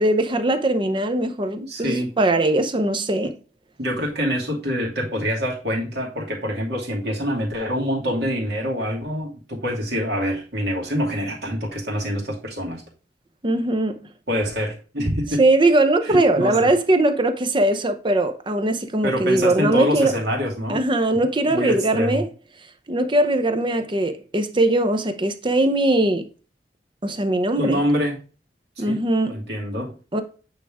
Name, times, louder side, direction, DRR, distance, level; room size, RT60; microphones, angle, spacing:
voice 1, 0.0-3.3 13.4-14.0 15.4-20.1 20.7-22.3 22.9-26.3 27.0-27.8 28.8-29.4 30.1-30.2, right 1 dB, 25° right, 0.7 m, -20 dB
voice 2, 1.7-2.1 3.8-12.8 14.3-15.4 16.1-16.7 19.0-20.8 21.1-22.2 27.6-28.2 28.8-29.9, equal, 65° right, 2.6 m, -25 dB
8.9 x 3.5 x 3.4 m
head